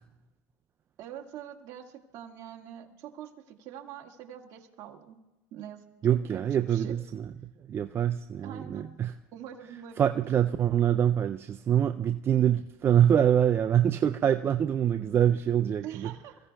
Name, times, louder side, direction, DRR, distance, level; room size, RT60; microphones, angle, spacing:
voice 1, 1.0-5.2 5.5-7.0 8.4-8.9 9.3-10.1 15.8-16.4, right 10 dB, 50° right, 1 dB, 1.8 m, -44 dB
voice 2, 6.0-7.3 7.7-9.1 10.0-16.1, right 9 dB, 30° right, 8 dB, 0.4 m, -25 dB
28.0 x 15.5 x 2.3 m, 1.1 s
supercardioid pair, 115°, 8 cm